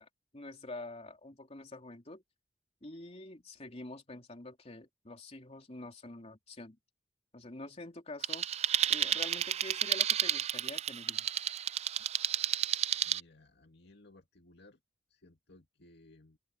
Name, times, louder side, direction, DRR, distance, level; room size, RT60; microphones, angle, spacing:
voice 1, 0.0-2.2 2.8-6.8 7.3-8.5 8.9-11.5, left 2 dB, 35° left, 3.1 m, -47 dB
sound 1, 8.2-13.2, right 10 dB, 35° right, 0.4 m, -31 dB
voice 2, 13.0-14.8 15.1-16.4, left 2 dB, 60° left, 2.4 m, -59 dB
open air
head